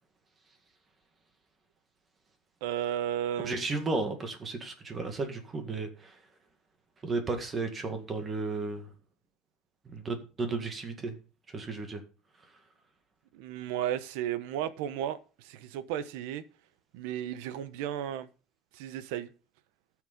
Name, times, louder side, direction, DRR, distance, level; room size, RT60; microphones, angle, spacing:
voice 1, 2.6-3.7 13.3-16.4 16.9-18.3 18.7-19.3, right 11 dB, 85° right, 1.0 m, -34 dB
voice 2, 3.4-6.2 7.0-8.9 9.9-11.2 11.5-12.0, right 3 dB, 20° right, 1.9 m, -34 dB
14.0 x 6.4 x 5.3 m
cardioid pair, 165°, 0 cm